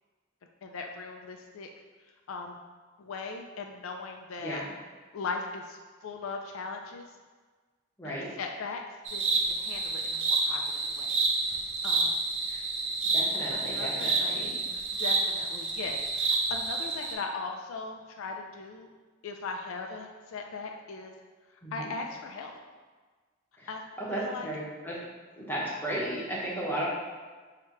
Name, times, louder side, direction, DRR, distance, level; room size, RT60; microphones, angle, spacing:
voice 1, 0.6-1.7 2.3-2.6 3.0-4.6 5.1-7.0 8.0-8.8 9.1-10.6 10.9-11.2 11.8-12.2 13.5-18.9 19.2-21.1 21.7-22.6 23.7-23.8 24.1-24.5 26.8-26.9, left 4 dB, 75° left, 3 dB, 0.4 m, -39 dB
sound 1, 9.1-17.1, right 3 dB, 60° right, 0.6 m, -29 dB
voice 2, 13.1-14.6 21.6-21.9 23.6-23.7 24.0-24.9 25.4-26.9, right 1 dB, 10° left, -6 dB, 0.9 m, -34 dB
3.1 x 2.8 x 4.5 m, 1.4 s
head